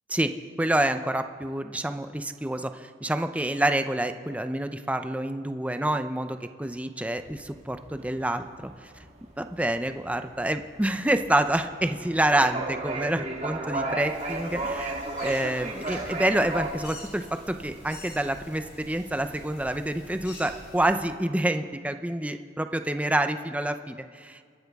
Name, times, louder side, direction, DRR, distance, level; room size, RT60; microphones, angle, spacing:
voice 1, 0.6-8.9 9.4-14.9 15.2-24.4, right 1 dB, 5° right, 8 dB, 0.5 m, -27 dB
sound 1, 7.2-16.7, right 2 dB, 35° right, 1.6 m, -34 dB
sound 2, 14.0-21.0, left 2 dB, 60° left, 5.0 m, -46 dB
26.5 x 12.0 x 3.6 m, 2.1 s
head